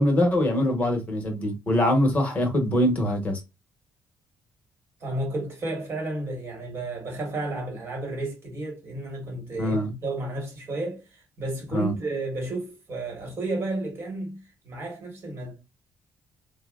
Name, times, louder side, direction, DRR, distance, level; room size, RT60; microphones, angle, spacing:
voice 1, 0.0-3.4 9.6-9.9 11.7-11.9, left 1 dB, 20° left, 0.9 m, -23 dB
voice 2, 5.0-15.6, right 2 dB, 35° right, 1.2 m, -32 dB
4.0 x 2.0 x 2.3 m
cardioid pair, 175°, 7 cm